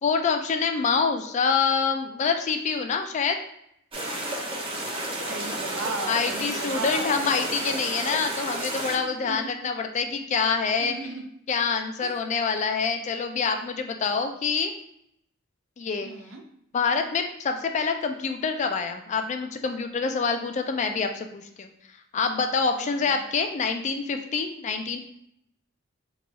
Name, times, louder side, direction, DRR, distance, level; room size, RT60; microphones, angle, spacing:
voice 1, 0.0-3.4 6.1-11.0 11.5-14.7 15.8-16.1 16.7-21.7 22.1-25.0, left 5 dB, 35° left, 6 dB, 0.3 m, -26 dB
sound 1, 3.9-9.0, right 1 dB, 25° right, 0.5 m, -32 dB
voice 2, 5.3-7.3 8.9-9.7 10.8-11.3 12.0-12.2 16.0-16.4 22.8-23.2, right 3 dB, 85° right, 3 dB, 0.6 m, -37 dB
2.9 x 2.3 x 3.9 m, 0.73 s
head